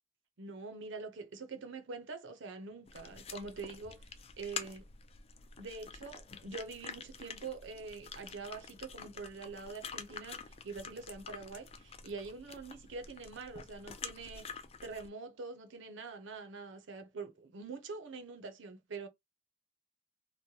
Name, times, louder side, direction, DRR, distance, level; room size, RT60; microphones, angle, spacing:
voice 1, 0.4-4.9 5.6-19.1, right 4 dB, 70° right, 0.6 m, -45 dB
sound 1, 2.9-15.1, left 6 dB, 30° left, 0.4 m, -48 dB
3.0 x 2.1 x 2.7 m
head